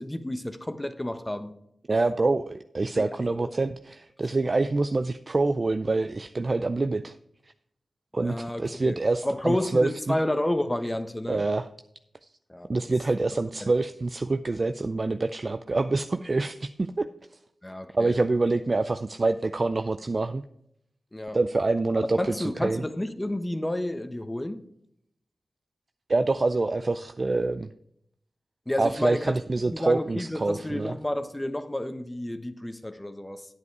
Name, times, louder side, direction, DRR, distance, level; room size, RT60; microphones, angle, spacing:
voice 1, 0.0-1.6 2.9-3.5 8.2-9.0 9.2-11.4 12.5-12.7 13.6-13.7 17.6-18.1 21.1-21.4 22.0-24.6 28.7-29.4 29.7-33.5, left 1 dB, 20° left, 1.0 m, -31 dB
voice 2, 1.9-7.2 8.1-10.2 11.3-11.7 12.7-17.1 17.9-20.4 21.3-22.8 26.1-27.7 28.8-30.9, right 3 dB, 45° right, 0.4 m, -26 dB
9.5 x 8.2 x 4.7 m
cardioid pair, 50°, 0 cm